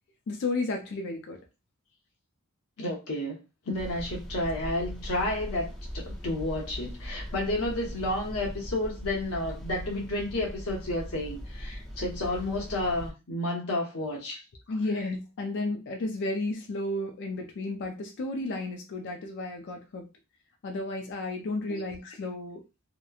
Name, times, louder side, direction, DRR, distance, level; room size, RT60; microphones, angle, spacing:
voice 1, 0.3-1.4 14.7-20.1 20.6-22.6, left 2 dB, 55° left, 3 dB, 0.4 m, -33 dB
voice 2, 2.8-3.4 3.7-14.4 21.7-21.8, left 1 dB, 70° left, -1 dB, 0.9 m, -31 dB
sound 1, 3.7-13.1, equal, 5° left, 0.6 m, -40 dB
2.9 x 2.1 x 2.3 m, 0.27 s
head